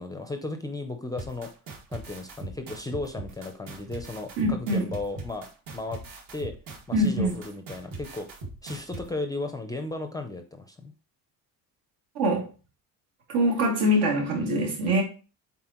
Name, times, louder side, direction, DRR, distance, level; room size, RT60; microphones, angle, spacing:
voice 1, 0.0-1.5 1.9-5.5 5.7-6.0 6.3-6.5 6.9-8.3 8.6-10.9, left 2 dB, 10° left, 0.4 m, -35 dB
sound 1, 1.2-9.0, right 2 dB, 65° right, 2.0 m, -39 dB
voice 2, 4.4-4.9 6.9-7.4 12.1-12.5 13.3-15.0, equal, 80° right, 2.5 m, -24 dB
7.6 x 4.2 x 2.9 m
cardioid pair, 170°, 38 cm